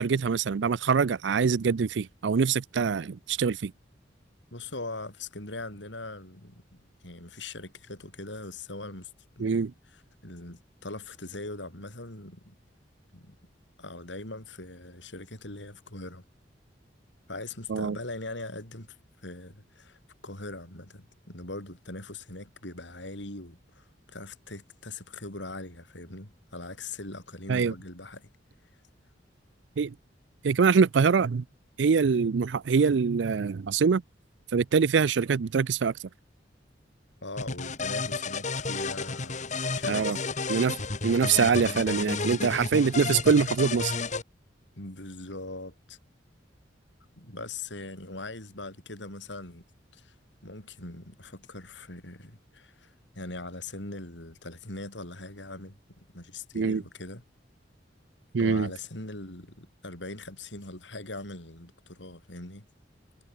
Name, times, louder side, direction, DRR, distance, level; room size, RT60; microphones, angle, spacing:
voice 1, 0.0-3.7 9.4-9.7 17.7-18.0 27.5-27.7 29.8-29.9 30.4-31.4 31.8-34.0 34.5-35.9 39.9-40.2 40.5-40.8 41.0-43.9 56.5-56.8 58.3-58.7, right 5 dB, 70° right, 0.4 m, -24 dB
voice 2, 4.5-9.1 9.4-9.6 9.9-12.5 13.1-13.4 13.8-16.2 17.3-19.0 19.2-28.3 37.2-40.2 44.8-46.0 47.2-49.6 49.9-50.2 50.4-57.2 58.4-62.7, left 2 dB, 75° left, 7.0 m, -41 dB
sound 1, 37.4-44.2, left 4 dB, 40° left, 2.2 m, -32 dB
head